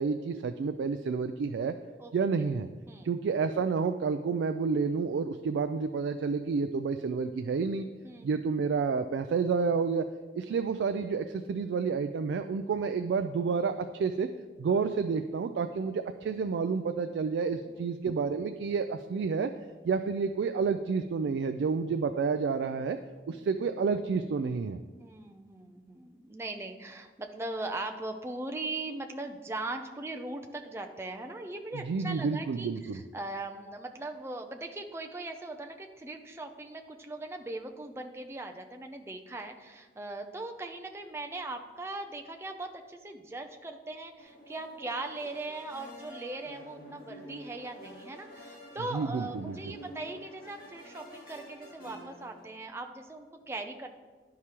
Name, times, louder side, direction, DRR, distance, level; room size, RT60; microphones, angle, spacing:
voice 1, 0.0-1.7 2.1-2.7 3.0-7.9 8.2-10.1 10.4-14.3 14.6-19.5 19.8-23.0 23.3-24.8 31.7-33.0 48.9-49.6, right 5 dB, 85° right, 8 dB, 0.3 m, -30 dB
voice 2, 8.0-8.3 10.5-10.6 17.7-17.8 23.3-23.5 25.0-53.9, right 2 dB, 15° right, 4 dB, 0.4 m, -40 dB
sound 1, 44.2-52.5, equal, 50° left, 1.6 m, -49 dB
11.0 x 4.8 x 2.9 m, 1.3 s
head